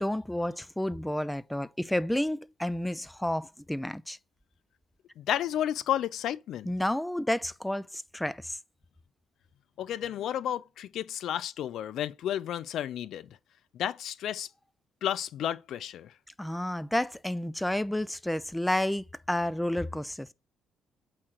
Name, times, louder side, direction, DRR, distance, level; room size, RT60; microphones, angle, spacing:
voice 1, 0.0-4.2 6.7-8.6 16.4-20.3, left 1 dB, 5° left, 0.6 m, -30 dB
voice 2, 5.2-6.7 9.8-13.3 13.7-14.5 15.0-16.1, left 11 dB, 65° left, 0.5 m, -32 dB
8.5 x 3.2 x 6.3 m
hypercardioid pair, 45°, 0 cm